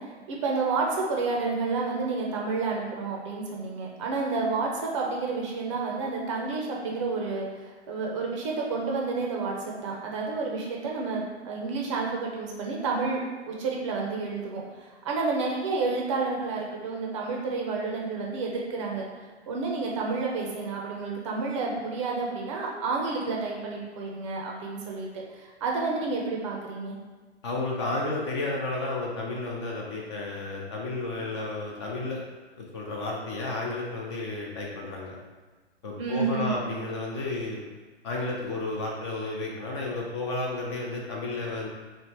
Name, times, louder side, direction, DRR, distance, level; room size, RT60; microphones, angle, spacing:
voice 1, 0.0-13.2 13.5-19.0 19.5-26.9 36.0-36.6, right 4 dB, 25° right, -1 dB, 0.6 m, -30 dB
voice 2, 27.4-32.2 32.6-35.2 35.8-37.6 38.0-41.7, left 2 dB, 25° left, -2 dB, 0.5 m, -32 dB
3.1 x 3.0 x 4.2 m, 1.4 s
figure-of-eight pair, 120°, 34 cm